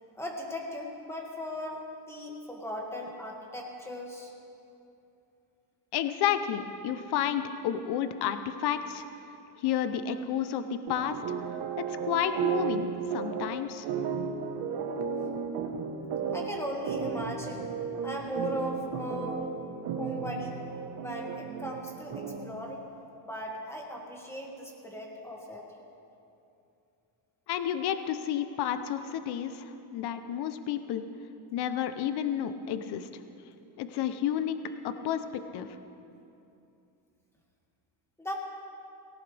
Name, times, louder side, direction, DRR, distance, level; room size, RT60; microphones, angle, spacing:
voice 1, 0.1-1.8 2.1-4.3 16.3-17.7 18.0-19.5 20.0-20.6 21.0-22.8 23.2-25.6 38.2-38.3, equal, 5° left, -1 dB, 2.0 m, -38 dB
voice 2, 5.9-9.1 9.6-11.2 11.8-13.9 27.5-31.1 31.5-33.1 33.8-35.7, left 9 dB, 55° left, 10 dB, 0.8 m, -31 dB
sound 1, 10.9-22.6, right 6 dB, 55° right, 1.3 m, -34 dB
18.5 x 17.5 x 3.4 m, 2.7 s
cardioid pair, 145°, 46 cm